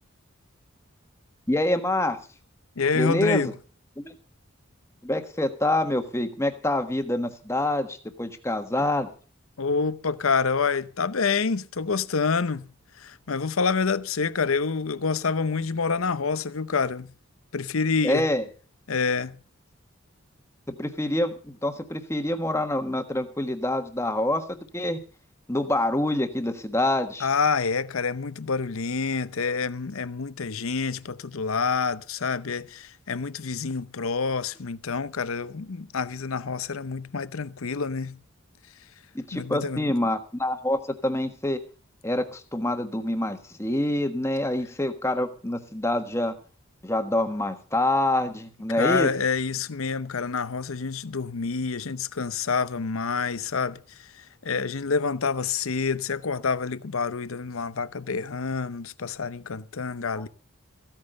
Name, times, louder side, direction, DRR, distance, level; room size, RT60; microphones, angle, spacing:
voice 1, 1.5-2.2 2.9-3.5 4.0-4.1 5.0-9.1 18.0-18.4 20.7-25.0 25.5-27.3 39.1-41.6 42.0-46.3 46.8-49.1, left 1 dB, 15° left, 1.4 m, -26 dB
voice 2, 2.8-3.5 9.6-12.7 13.0-17.1 17.5-18.3 18.9-19.4 27.2-38.2 39.3-39.9 48.7-60.3, left 5 dB, 80° left, 0.7 m, -27 dB
15.5 x 9.0 x 6.7 m
head